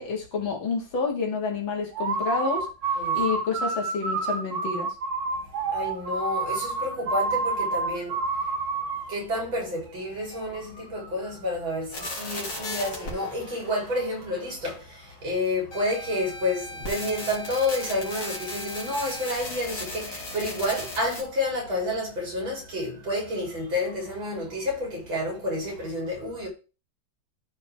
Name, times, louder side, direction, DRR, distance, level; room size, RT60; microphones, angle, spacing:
voice 1, 0.0-2.7 3.1-4.9, left 4 dB, 80° left, 2.9 m, -29 dB
sound 1, 1.9-9.1, right 4 dB, 55° right, 1.4 m, -28 dB
voice 2, 5.3-26.5, left 1 dB, 85° right, 4.6 m, -30 dB
sound 2, 11.9-14.8 15.7-21.2, left 1 dB, 60° left, 3.0 m, -37 dB
13.5 x 4.7 x 3.6 m
omnidirectional pair, 2.1 m